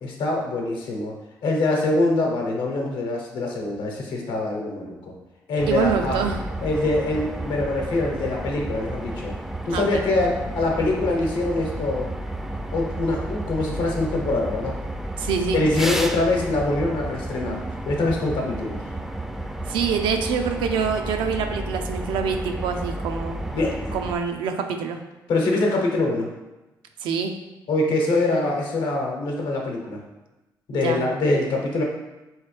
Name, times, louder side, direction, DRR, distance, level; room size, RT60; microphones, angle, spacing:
voice 1, 0.0-1.1 1.4-5.1 5.5-6.3 6.6-9.3 9.6-12.1 12.7-14.8 15.5-18.8 23.5-24.0 25.3-26.3 27.7-30.0 30.7-31.8, left 2 dB, 80° left, 0 dB, 0.9 m, -24 dB
sound 1, 5.6-24.1, right 1 dB, 5° right, 0.3 m, -32 dB
voice 2, 5.7-6.4 9.7-10.0 15.2-15.6 19.7-23.4 23.9-25.0 27.0-27.3 30.7-31.1, right 6 dB, 85° right, 5 dB, 0.4 m, -25 dB
4.2 x 3.1 x 3.2 m, 1.0 s
cardioid pair, 90°, 8 cm